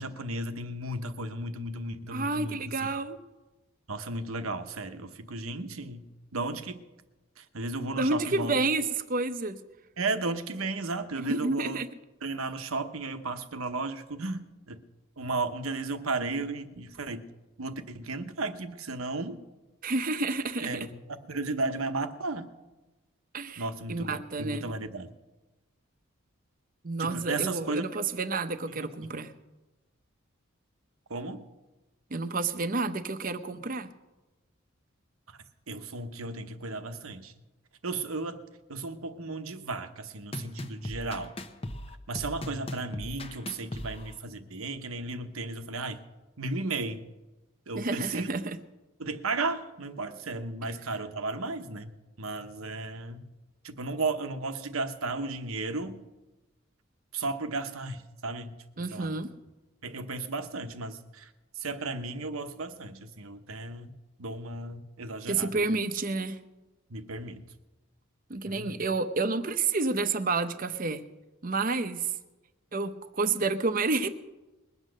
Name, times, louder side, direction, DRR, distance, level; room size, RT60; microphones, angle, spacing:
voice 1, 0.0-2.8 3.9-6.8 7.4-8.6 10.0-11.8 12.2-14.8 15.2-17.2 17.6-19.4 20.6-21.0 21.3-22.5 23.6-25.1 27.0-27.8 28.8-28.9 31.1-31.5 35.3-35.4 35.7-37.3 37.8-41.4 42.1-46.0 46.4-47.1 47.7-48.3 49.0-53.2 53.6-56.0 57.1-58.5 58.9-59.2 59.8-61.3 61.6-63.9 64.2-65.7 66.9-67.4 68.4-68.8, right 3 dB, 85° right, 8 dB, 1.0 m, -34 dB
voice 2, 2.1-3.2 7.9-9.6 11.3-11.9 19.8-20.9 23.3-24.7 26.8-29.3 32.1-33.9 47.7-48.6 58.8-59.3 65.3-66.4 68.3-71.0 71.4-72.1 72.7-74.1, right 3 dB, 40° right, 10 dB, 0.7 m, -30 dB
sound 1, 40.3-44.2, left 1 dB, 25° left, 0.8 m, -38 dB
21.0 x 8.2 x 6.4 m, 1.1 s
head